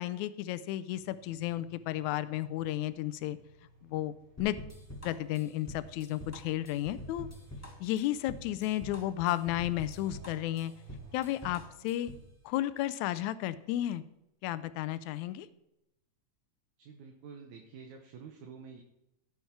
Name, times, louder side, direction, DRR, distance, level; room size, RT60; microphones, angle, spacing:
voice 1, 0.0-3.4 3.8-4.6 5.0-7.3 7.8-10.7 11.1-12.1 12.5-14.0 14.4-15.5, left 14 dB, 80° left, 15 dB, 1.9 m, -33 dB
sound 1, 0.9-11.4, right 1 dB, 40° right, 4.2 m, -59 dB
sound 2, 4.4-12.3, equal, 10° left, 0.8 m, -46 dB
voice 2, 16.8-18.8, right 6 dB, 75° right, 3 dB, 2.5 m, -49 dB
16.5 x 7.3 x 4.5 m, 0.84 s
omnidirectional pair, 3.4 m